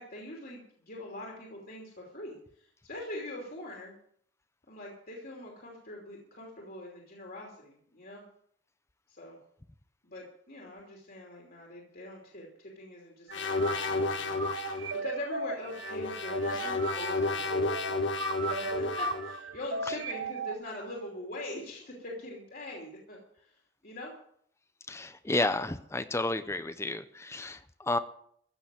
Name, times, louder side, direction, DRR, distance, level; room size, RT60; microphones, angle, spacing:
voice 1, 0.0-3.9 4.7-8.2 9.1-9.4 10.0-23.6 23.8-24.1, left 1 dB, 55° left, -2 dB, 3.0 m, -43 dB
sound 1, 13.3-14.9 15.7-19.3, left 3 dB, 75° left, 1.6 m, -32 dB
sound 2, 13.3-20.6, right 3 dB, 90° right, 1.0 m, -37 dB
voice 2, 24.9-28.0, left 2 dB, 15° left, 11 dB, 0.6 m, -31 dB
15.0 x 6.7 x 9.1 m, 0.65 s
head